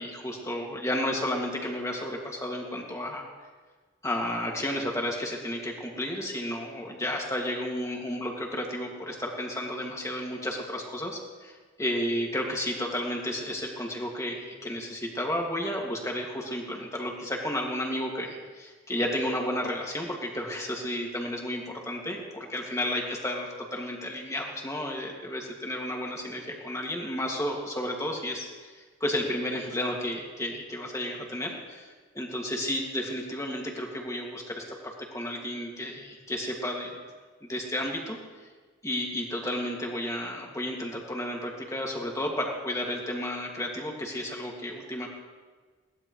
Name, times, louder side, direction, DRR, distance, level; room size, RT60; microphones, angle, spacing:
voice 1, 0.0-3.3 4.0-37.1 37.4-38.2 38.8-45.1, left 1 dB, 15° left, -1 dB, 2.3 m, -32 dB
21.0 x 19.0 x 3.3 m, 1.4 s
head